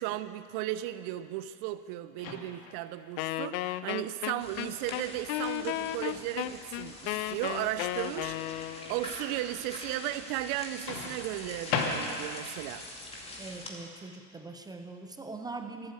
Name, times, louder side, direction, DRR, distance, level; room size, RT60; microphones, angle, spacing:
voice 1, 0.0-12.9, right 14 dB, 45° right, 13 dB, 0.7 m, -35 dB
Microwave oven, 2.2-2.9 4.8-5.1 10.9-12.5, left 4 dB, 70° left, 2.5 m, -35 dB
Wind instrument woodwind instrument, 3.2-9.0, left 15 dB, 40° left, 0.5 m, -34 dB
sound 1, 4.4-13.7, left 1 dB, 10° left, 2.2 m, -45 dB
voice 2, 13.4-15.9, right 3 dB, 10° right, 6 dB, 0.6 m, -42 dB
12.5 x 11.5 x 8.1 m, 2.2 s
supercardioid pair, 130°, 48 cm